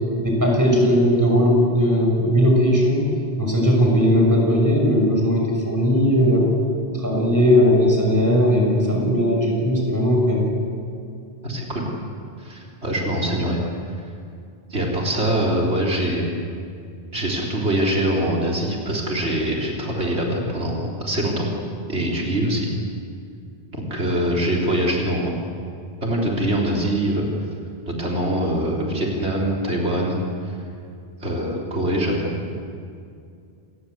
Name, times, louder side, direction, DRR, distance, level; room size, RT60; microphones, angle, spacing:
voice 1, 0.2-6.5 6.9-10.5, equal, 15° right, -1 dB, 6.4 m, -18 dB
voice 2, 11.4-11.9 12.4-13.6 14.7-16.2 17.1-21.5 21.9-22.7 23.7-25.3 26.0-27.3 27.9-30.5 31.2-32.3, right 1 dB, 90° right, -2 dB, 4.1 m, -23 dB
27.5 x 21.0 x 8.1 m, 2.4 s
omnidirectional pair, 1.1 m